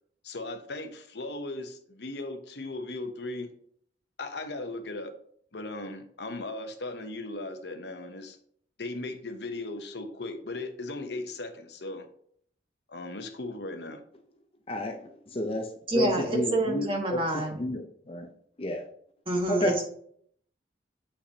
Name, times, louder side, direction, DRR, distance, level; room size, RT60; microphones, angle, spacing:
voice 1, 0.2-3.5 4.2-5.1 5.5-8.4 8.8-12.1 12.9-14.0, left 2 dB, 70° left, 7 dB, 0.9 m, -37 dB
voice 2, 14.7-18.3 18.6-18.9 19.5-19.8, left 1 dB, 35° left, 5 dB, 0.6 m, -31 dB
voice 3, 15.9-17.6 19.3-19.8, right 1 dB, 30° right, 1 dB, 1.6 m, -27 dB
8.2 x 5.6 x 2.9 m, 0.63 s
head